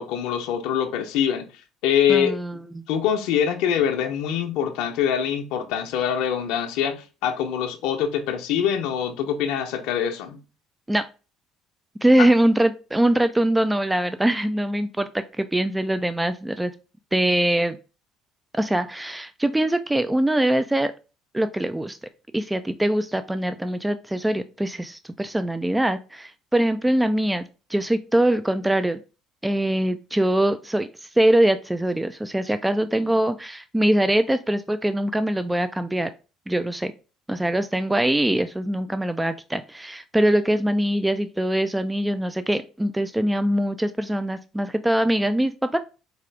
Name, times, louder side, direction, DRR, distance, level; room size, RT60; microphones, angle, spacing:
voice 1, 0.0-1.4 1.8-2.4 2.9-10.4 12.2-12.3, left 8 dB, 75° left, 0.6 m, -24 dB
voice 2, 2.1-2.8 10.9-11.1 12.0-16.7 17.1-17.8 18.5-20.9 21.3-22.0 22.3-27.4 27.7-29.0 29.4-36.1 36.5-36.9 37.3-45.8, right 1 dB, 10° right, 0.3 m, -23 dB
4.8 x 2.4 x 3.2 m
hypercardioid pair, 65°, 0 cm